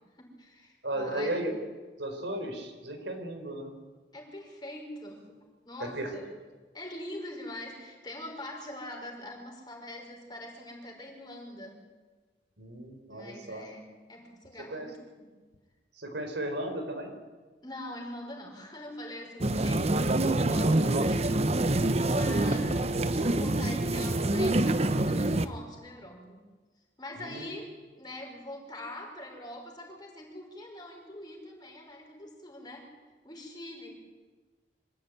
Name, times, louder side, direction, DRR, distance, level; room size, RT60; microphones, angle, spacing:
voice 1, 0.2-1.4 4.1-5.3 5.6-6.3 6.7-11.8 13.1-15.3 17.6-26.4 27.0-32.9 33.2-33.9, left 1 dB, 25° left, 1 dB, 5.4 m, -43 dB
voice 2, 0.8-1.5 2.0-3.8 5.9-6.3 12.6-13.6 14.7-14.9 16.0-17.1 27.2-27.5, right 1 dB, 80° right, 5 dB, 4.2 m, -35 dB
sound 1, 19.4-25.4, right 2 dB, 35° right, 0.9 m, -26 dB
25.5 x 15.5 x 9.4 m, 1.3 s
head